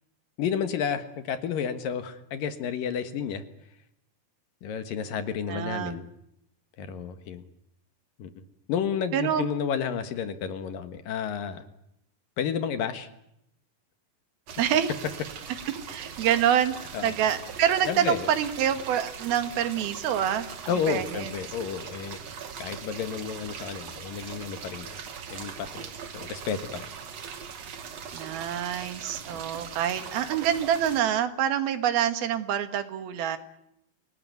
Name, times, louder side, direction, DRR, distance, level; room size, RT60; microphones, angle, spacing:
voice 1, 0.4-3.4 4.6-6.1 6.8-7.4 8.2-11.6 12.4-13.1 16.9-17.1 17.8-18.3 20.7-22.2 22.6-25.0 25.3-26.9 29.3-29.5, left 7 dB, 70° left, 9 dB, 3.1 m, -31 dB
voice 2, 5.5-6.0 9.1-9.4 14.6-14.9 15.9-16.7 17.0-20.5 20.9-21.3 28.1-33.4, right 9 dB, 80° right, 9 dB, 3.4 m, -26 dB
sound 1, 14.5-31.0, right 7 dB, 50° right, 2.5 m, -40 dB
27.0 x 18.5 x 9.4 m, 0.80 s
omnidirectional pair, 4.3 m